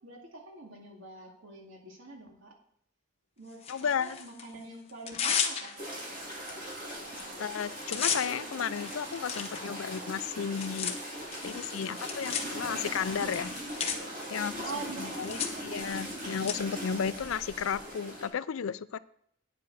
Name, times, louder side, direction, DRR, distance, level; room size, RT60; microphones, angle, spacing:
voice 1, 0.0-2.6 3.4-6.3 14.6-15.9, right 3 dB, 80° right, 2.3 m, -45 dB
Tearing, 3.6-4.4 4.9-6.0 6.5-6.6 6.9-7.2 7.5-16.5, left 7 dB, 30° left, 1.0 m, -36 dB
voice 2, 3.7-4.2 7.4-11.0 11.4-13.5 14.3-14.6 15.0-19.0, left 7 dB, 85° left, 0.4 m, -33 dB
sound 1, 5.8-18.3, equal, 40° right, 3.7 m, -40 dB
9.5 x 8.3 x 4.7 m
head